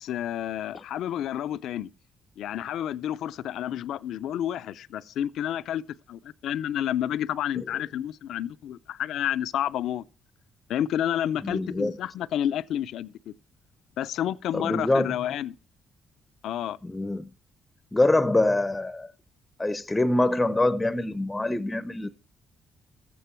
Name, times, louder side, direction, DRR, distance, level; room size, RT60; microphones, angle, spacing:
voice 1, 0.0-1.9 2.4-10.1 10.7-13.3 14.0-15.6 16.4-16.8, left 11 dB, 80° left, 0.4 m, -30 dB
voice 2, 11.4-11.9 14.5-15.1 16.8-17.3 17.9-19.1 19.6-22.1, left 2 dB, 15° left, 0.6 m, -24 dB
13.5 x 8.6 x 4.4 m
cardioid pair, 90°, 0 cm